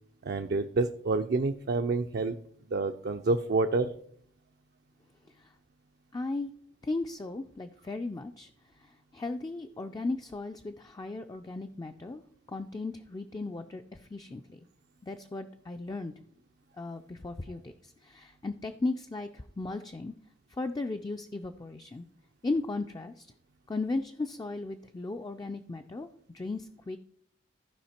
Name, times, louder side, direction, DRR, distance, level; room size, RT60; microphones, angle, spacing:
voice 1, 0.2-2.4 2.7-3.9, right 3 dB, 55° right, 6 dB, 0.5 m, -28 dB
voice 2, 6.1-6.5 6.8-8.5 8.8-12.2 12.5-14.6 15.0-16.1 16.8-20.1 20.6-22.1 22.4-23.3 23.7-26.1 26.3-27.0, left 3 dB, 20° left, 6 dB, 0.3 m, -36 dB
14.5 x 5.0 x 4.3 m, 0.65 s
head